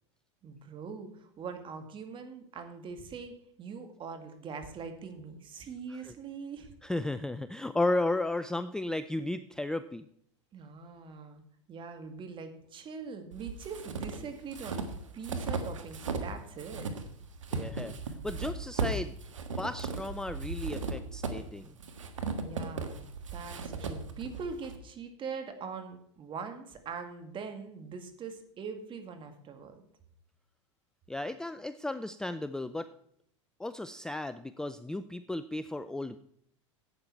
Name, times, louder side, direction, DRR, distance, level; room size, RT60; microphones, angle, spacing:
voice 1, 0.4-3.3 3.6-6.7 10.5-11.4 11.7-14.8 15.1-16.9 22.3-23.0 23.3-29.8, right 5 dB, 30° right, 6 dB, 2.1 m, -42 dB
voice 2, 6.8-10.1 17.5-19.2 19.6-21.7 31.1-32.9 33.6-36.2, left 2 dB, 5° left, 12 dB, 0.4 m, -34 dB
sound 1, 13.3-16.3 16.6-24.8, right 4 dB, 90° right, 1.5 m, -36 dB
12.0 x 8.7 x 4.5 m, 0.69 s
hypercardioid pair, 100°, 16 cm